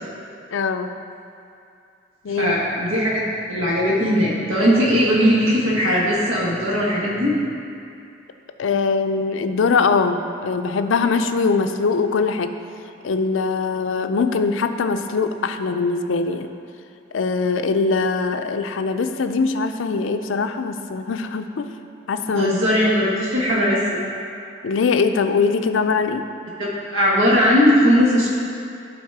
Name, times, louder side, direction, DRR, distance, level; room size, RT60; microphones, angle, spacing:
voice 1, 0.5-0.9 2.2-2.5 8.6-12.5 13.0-16.5 17.1-21.7 22.1-22.5 24.6-26.2, left 4 dB, 75° left, 8 dB, 0.4 m, -22 dB
voice 2, 2.4-3.2 3.5-7.4 22.3-24.0 26.6-28.3, equal, 85° right, -5 dB, 1.4 m, -19 dB
11.5 x 4.0 x 4.8 m, 2.5 s
head